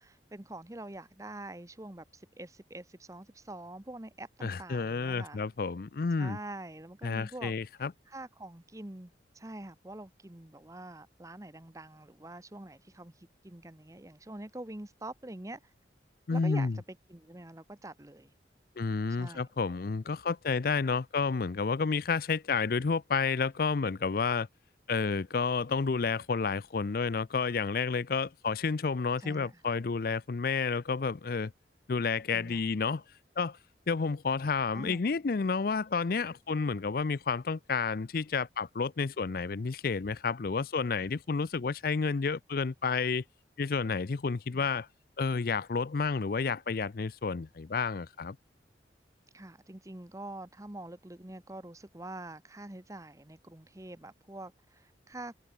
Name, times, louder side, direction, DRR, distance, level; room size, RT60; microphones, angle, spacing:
voice 1, 0.0-5.4 6.2-7.5 8.1-15.6 16.3-16.8 17.1-18.3 19.1-19.5 29.2-29.6 32.3-32.7 34.7-35.1 44.5-44.7 49.3-55.4, right 1 dB, 20° right, 1.0 m, -45 dB
voice 2, 4.4-6.4 7.0-7.9 16.3-16.8 18.8-24.5 24.9-31.5 31.9-33.0 33.4-33.6 33.9-43.2 43.6-44.9 45.2-48.4, left 4 dB, 55° left, 0.5 m, -30 dB
head